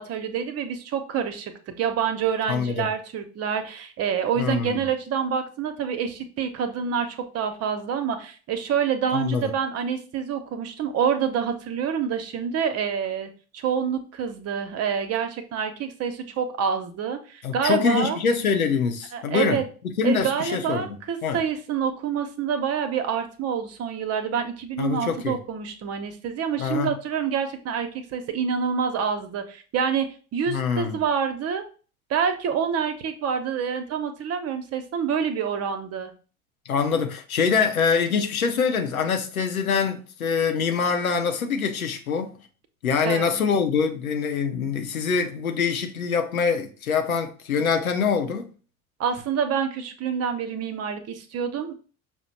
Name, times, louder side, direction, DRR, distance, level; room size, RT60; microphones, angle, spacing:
voice 1, 0.0-18.2 19.1-19.6 20.0-30.1 30.3-31.7 32.1-36.1 43.0-43.5 49.0-51.8, right 7 dB, 35° right, 0.7 m, -27 dB
voice 2, 2.5-2.9 4.4-4.9 9.1-9.5 17.4-19.6 20.0-20.9 21.2-21.4 24.8-25.4 26.6-26.9 30.5-31.0 36.7-42.3 42.8-48.5, left 6 dB, 80° left, 0.7 m, -24 dB
5.9 x 2.1 x 4.0 m
figure-of-eight pair, 65°, 42 cm